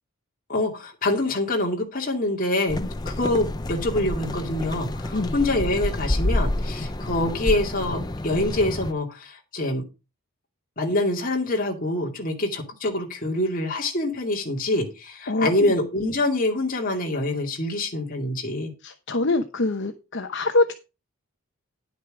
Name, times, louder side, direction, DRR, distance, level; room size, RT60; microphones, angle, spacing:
voice 1, 0.5-2.8 3.1-9.8 10.8-18.7, left 1 dB, 40° left, 2.4 m, -25 dB
sound 1, 2.7-8.9, left 1 dB, 20° left, 0.6 m, -28 dB
voice 2, 18.8-20.7, left 2 dB, 55° left, 0.9 m, -24 dB
10.5 x 6.5 x 4.9 m
head